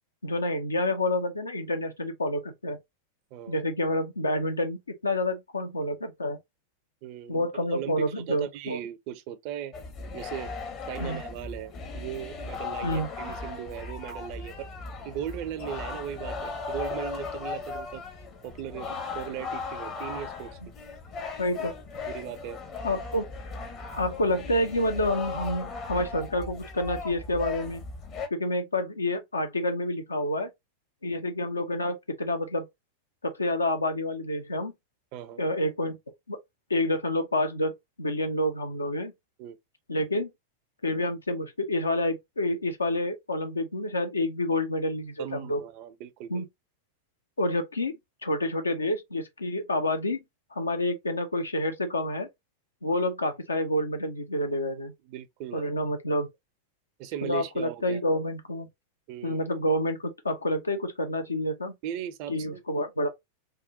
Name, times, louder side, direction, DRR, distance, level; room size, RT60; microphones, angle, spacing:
voice 1, 0.2-2.8 3.5-6.4 7.3-8.8 11.0-11.2 12.8-13.1 21.4-21.7 22.8-23.3 24.0-27.8 28.3-30.5 31.0-32.7 33.2-34.7 35.4-36.0 36.3-36.4 36.7-39.1 39.9-40.3 40.8-45.6 46.3-46.4 47.4-48.0 48.2-50.2 50.5-52.3 52.8-54.9 55.5-56.3 57.2-58.7 59.2-61.8 62.3-63.1, left 1 dB, 75° left, 0.7 m, -28 dB
voice 2, 7.0-9.7 10.1-10.5 10.9-14.7 15.0-18.0 18.4-20.7 21.6-21.7 22.0-22.6 35.1-35.4 39.4-39.6 45.2-46.5 55.1-55.7 57.0-58.0 59.1-59.4 61.8-62.6, right 10 dB, 45° right, 0.5 m, -38 dB
sound 1, 9.7-28.3, left 4 dB, 35° left, 0.8 m, -37 dB
3.6 x 2.2 x 2.5 m
figure-of-eight pair, 90°, 0 cm